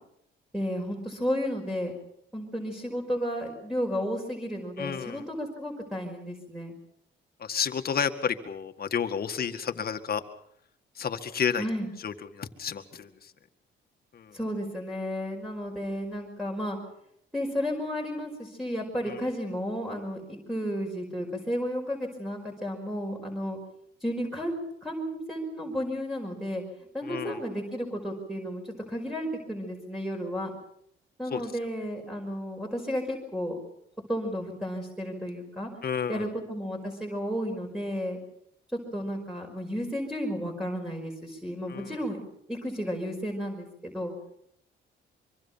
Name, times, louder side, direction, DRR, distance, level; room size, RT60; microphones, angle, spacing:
voice 1, 0.5-1.9 2.3-6.7 11.6-11.9 14.3-16.8 17.3-23.6 24.0-26.6 26.9-30.5 31.2-33.6 34.1-35.7 36.1-38.2 38.7-42.2 42.5-44.1, equal, ahead, 0 dB, 5.4 m, -33 dB
voice 2, 4.8-5.2 7.4-10.2 11.0-11.7 12.0-13.3 14.1-14.4 19.0-19.2 27.0-27.4 31.3-31.4 35.8-36.3 41.7-41.9, left 7 dB, 50° left, 8 dB, 2.0 m, -31 dB
24.5 x 24.5 x 5.8 m, 0.72 s
cardioid pair, 90°, 20 cm